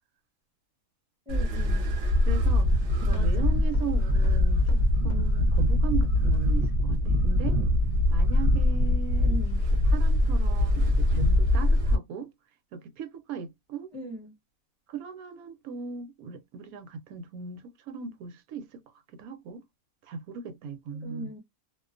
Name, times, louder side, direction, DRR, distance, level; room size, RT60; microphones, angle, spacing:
voice 1, 1.3-1.9 3.1-3.5 9.2-9.6 13.9-14.4 21.0-21.4, right 1 dB, 5° right, 0.8 m, -39 dB
sound 1, 1.3-12.0, left 1 dB, 55° right, 0.9 m, -23 dB
sound 2, 2.2-2.5 3.1-5.5, left 4 dB, 70° left, 0.9 m, -47 dB
voice 2, 2.3-4.7 5.0-7.6 8.1-9.3 9.9-12.3 12.7-13.9 14.9-18.8 19.1-19.6 20.1-21.3, right 6 dB, 90° right, 1.1 m, -38 dB
2.4 x 2.2 x 2.4 m
omnidirectional pair, 1.5 m